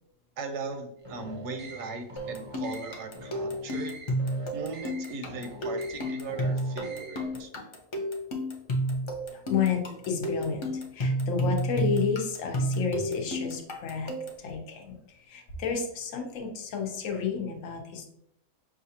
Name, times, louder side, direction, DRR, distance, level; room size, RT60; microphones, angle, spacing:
voice 1, 0.4-4.0 4.5-7.5, right 4 dB, 65° right, 7 dB, 0.8 m, -38 dB
sound 1, 1.0-7.4, right 1 dB, 30° right, 0.7 m, -45 dB
sound 2, 2.2-14.5, equal, 50° left, 0.3 m, -31 dB
voice 2, 9.3-14.1 14.4-18.0, left 6 dB, 70° left, 2 dB, 1.1 m, -31 dB
6.1 x 2.5 x 2.7 m, 0.77 s
omnidirectional pair, 1.5 m